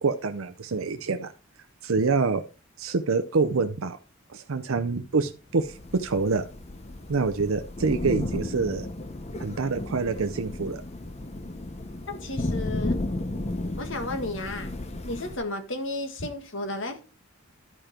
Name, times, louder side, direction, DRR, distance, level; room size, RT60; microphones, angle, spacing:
voice 1, 0.0-1.3 1.8-2.4 2.8-4.0 4.3-6.4 7.1-8.9 9.4-10.8, right 4 dB, 75° right, 0.6 m, -26 dB
Thunder / Rain, 5.6-15.4, left 1 dB, 30° left, 0.9 m, -34 dB
voice 2, 12.1-13.0 13.8-14.7 15.0-17.0, left 2 dB, 60° left, 1.7 m, -33 dB
11.0 x 5.1 x 4.4 m
head